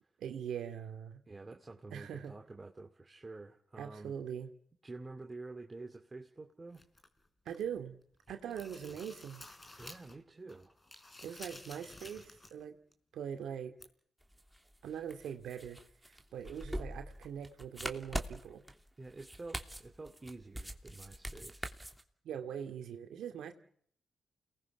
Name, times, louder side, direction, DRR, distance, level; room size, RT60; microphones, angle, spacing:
voice 1, 0.2-1.2 1.9-2.3 3.8-4.5 7.5-8.0 8.3-9.4 11.2-12.8 13.1-13.7 14.8-15.8 16.1-18.6 22.2-23.5, right 8 dB, 75° right, 6 dB, 2.3 m, -42 dB
voice 2, 1.3-4.1 4.8-6.8 9.8-10.7 19.0-21.7, right 3 dB, 30° right, 4 dB, 2.6 m, -49 dB
sound 1, 6.7-7.8 8.1-10.2 10.5-12.6 12.9-13.0 13.8-13.9, left 2 dB, 30° left, 4.4 m, -53 dB
sound 2, 14.2-22.0, equal, 5° right, 3.1 m, -43 dB
29.0 x 20.0 x 5.9 m, 0.63 s
supercardioid pair, 45°, 0 cm